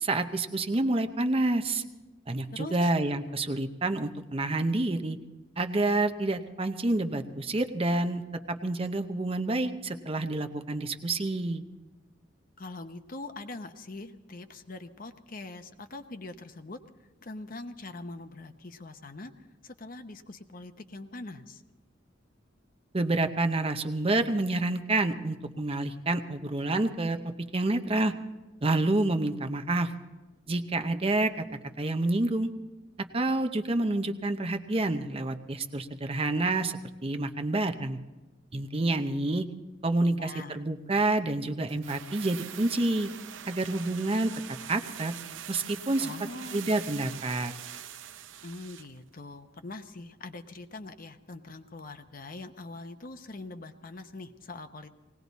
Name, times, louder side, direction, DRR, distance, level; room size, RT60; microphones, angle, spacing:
voice 1, 0.0-1.8 2.3-5.2 5.6-8.2 8.5-11.6 22.9-27.2 27.5-28.1 28.6-29.9 30.5-31.4 31.8-32.5 33.1-38.0 38.5-39.5 39.8-43.1 43.5-44.3 44.7-45.1 45.5-46.1 46.5-47.5, right 2 dB, 30° right, 8 dB, 0.7 m, -28 dB
voice 2, 2.5-2.9 12.6-16.8 17.2-21.6 40.0-40.6 46.0-46.7 48.4-54.9, left 2 dB, 45° left, 8 dB, 0.8 m, -43 dB
sound 1, 41.7-49.0 49.2-49.3, right 10 dB, 85° right, 0.6 m, -43 dB
19.5 x 17.5 x 4.1 m, 1.2 s
head